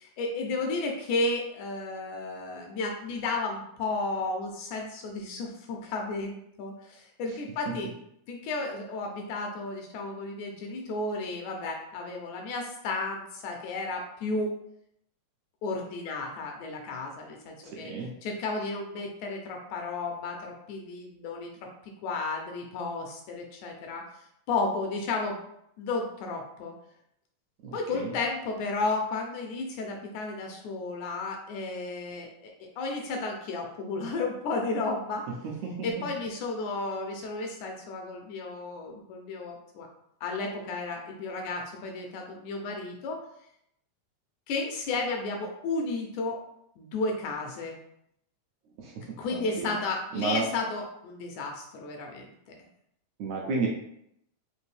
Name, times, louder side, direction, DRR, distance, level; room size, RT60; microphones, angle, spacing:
voice 1, 0.0-7.9 8.3-14.5 15.6-17.9 18.2-21.5 22.0-24.0 24.5-25.4 25.8-26.7 27.7-35.3 35.8-39.9 40.2-43.2 44.5-46.4 46.8-47.8 49.2-52.6, left 3 dB, 80° left, 2 dB, 1.8 m, -33 dB
voice 2, 17.7-18.1 27.6-28.1 35.6-35.7 48.8-49.0 49.3-49.7 50.1-50.4 53.2-53.7, right 4 dB, 75° right, -2 dB, 1.7 m, -32 dB
5.1 x 2.6 x 3.2 m, 0.75 s
omnidirectional pair, 3.7 m